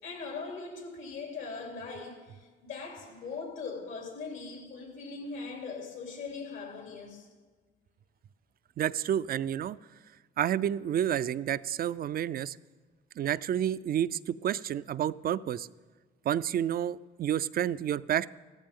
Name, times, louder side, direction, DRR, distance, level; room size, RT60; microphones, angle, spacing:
voice 1, 0.0-7.3, left 4 dB, 80° left, 3.0 m, -40 dB
voice 2, 8.8-9.8 10.4-12.6 13.2-15.7 16.3-18.3, right 10 dB, 50° right, 0.4 m, -30 dB
15.5 x 14.0 x 3.7 m
cardioid pair, 90°, 20 cm